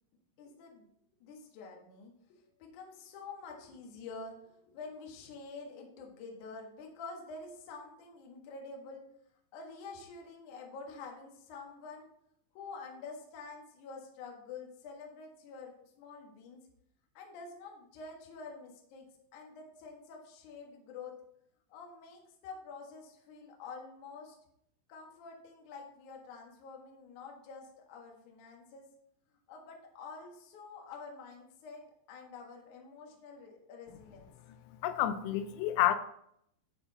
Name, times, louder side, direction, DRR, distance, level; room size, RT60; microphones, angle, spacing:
voice 1, 0.4-0.9 1.2-9.0 9.5-12.1 12.5-16.6 17.1-19.1 19.3-21.2 21.7-24.4 24.9-28.9 29.5-34.3, left 4 dB, 70° left, 0 dB, 1.9 m, -48 dB
voice 2, 34.8-36.0, left 12 dB, 90° left, 11 dB, 3.3 m, -29 dB
9.7 x 4.7 x 4.2 m, 0.72 s
omnidirectional pair, 5.8 m